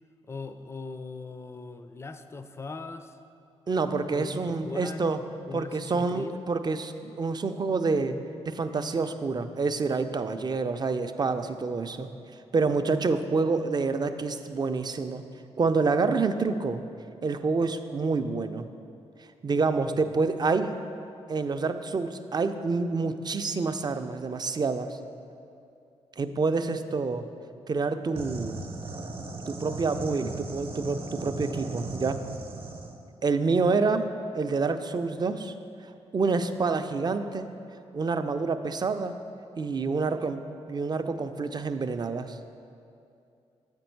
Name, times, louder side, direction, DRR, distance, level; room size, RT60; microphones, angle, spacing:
voice 1, 0.2-3.2 4.1-5.1 5.5-6.3, left 3 dB, 20° left, 9 dB, 0.4 m, -40 dB
voice 2, 3.7-5.2 5.5-8.2 8.4-12.1 12.5-15.2 15.6-16.8 17.2-18.7 19.4-20.8 21.3-25.0 26.2-27.2 27.7-28.6 29.5-32.2 33.2-35.5 36.1-37.5 37.9-39.2 39.6-40.4 40.7-42.4, right 4 dB, 35° right, 9 dB, 0.4 m, -27 dB
sound 1, 28.2-33.0, right 3 dB, 55° right, 0.8 m, -37 dB
7.7 x 5.2 x 4.5 m, 2.6 s
supercardioid pair, 50°, 12 cm